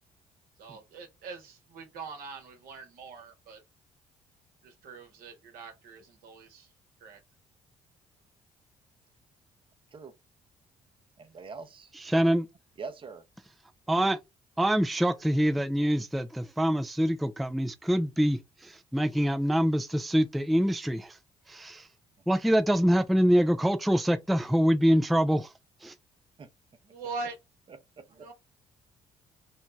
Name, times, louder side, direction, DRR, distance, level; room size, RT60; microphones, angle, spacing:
voice 1, 0.6-3.6 4.6-6.7 7.0-7.2 26.8-27.3 28.1-28.3, right 4 dB, 70° right, 1.0 m, -42 dB
voice 2, 11.2-11.9 12.8-13.2 26.4-26.5, right 4 dB, 35° right, 0.6 m, -42 dB
voice 3, 12.0-12.5 13.9-14.2 14.6-21.2 21.5-21.9 22.3-25.5 25.8-25.9, equal, ahead, 0.3 m, -25 dB
2.6 x 2.1 x 3.1 m
hypercardioid pair, 50°, 16 cm